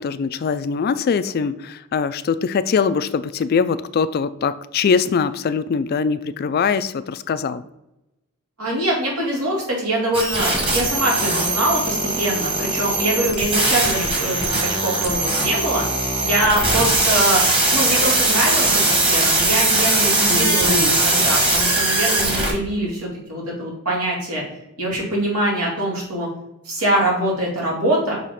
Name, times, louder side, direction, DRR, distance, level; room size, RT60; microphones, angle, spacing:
voice 1, 0.0-7.6 20.3-20.9, left 5 dB, 45° left, 13 dB, 0.3 m, -22 dB
voice 2, 8.6-15.8 16.2-17.4 17.7-24.4 24.8-26.3 26.6-28.2, right 1 dB, 85° right, -3 dB, 2.4 m, -23 dB
sound 1, 10.1-22.5, right 2 dB, 25° right, 1.3 m, -20 dB
6.3 x 3.0 x 5.7 m, 0.90 s
head